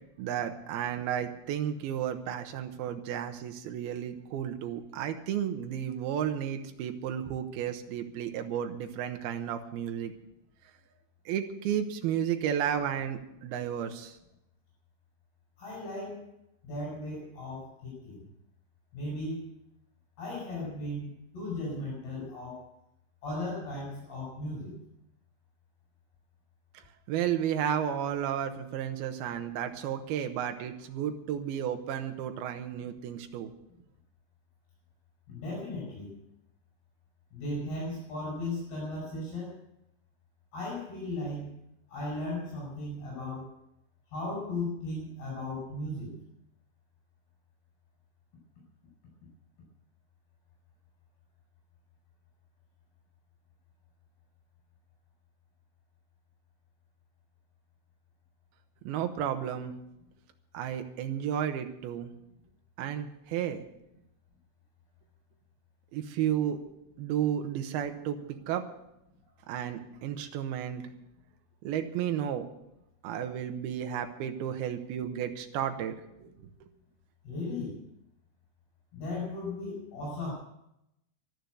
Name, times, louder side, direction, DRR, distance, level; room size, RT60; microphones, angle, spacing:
voice 1, 0.2-10.1 11.3-14.2 27.1-33.5 58.8-59.7 60.5-62.1 62.8-63.6 65.9-66.6 67.0-68.2 68.5-68.7 69.5-70.8 71.6-72.4 73.0-76.3 76.6-76.7, right 9 dB, 85° right, 6 dB, 2.2 m, -32 dB
voice 2, 15.6-16.3 16.6-18.2 18.9-19.6 20.2-22.7 23.2-24.8 35.3-36.2 37.3-39.6 40.5-41.6 41.9-43.5 44.1-46.2 77.2-77.8 78.9-80.3, left 2 dB, 50° left, -4 dB, 6.9 m, -36 dB
14.0 x 12.0 x 7.9 m, 0.83 s
omnidirectional pair, 6.0 m